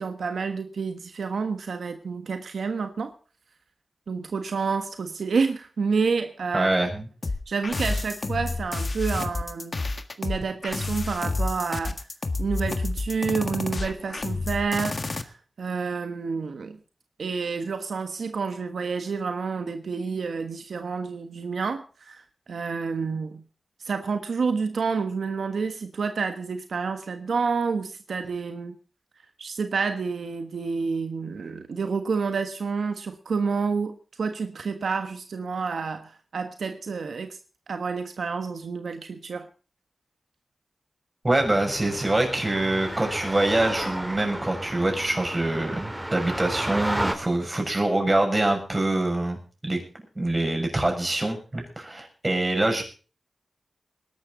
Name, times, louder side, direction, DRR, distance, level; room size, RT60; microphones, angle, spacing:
voice 1, 0.0-3.1 4.1-6.7 7.5-9.8 10.2-11.9 12.4-16.8 17.2-23.4 23.8-28.8 29.4-37.4 37.7-39.5, right 5 dB, 90° right, 7 dB, 1.3 m, -29 dB
voice 2, 6.5-7.1 41.2-49.8 50.1-52.8, right 2 dB, 30° right, 4 dB, 6.8 m, -25 dB
sound 1, 7.2-15.2, left 3 dB, 50° left, 1.6 m, -29 dB
sound 2, 41.4-47.1, right 1 dB, 10° right, 3.5 m, -32 dB
20.5 x 12.0 x 3.9 m, 0.37 s
cardioid pair, 60°, 0 cm